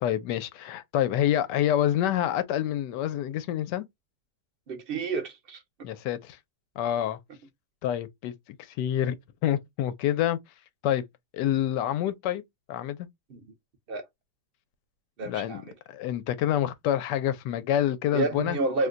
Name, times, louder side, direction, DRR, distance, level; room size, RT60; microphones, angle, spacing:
voice 1, 0.0-3.9 5.8-6.4 6.8-7.2 7.8-8.3 8.8-9.2 9.4-10.4 10.8-11.0 11.3-12.4 12.7-13.1 15.3-15.6 15.9-18.6, left 11 dB, 90° left, 1.2 m, -27 dB
voice 2, 4.7-5.6 13.3-13.4 13.9-14.0 15.2-15.7 18.1-18.9, right 3 dB, 50° right, 0.7 m, -30 dB
2.9 x 2.2 x 3.7 m
omnidirectional pair, 1.8 m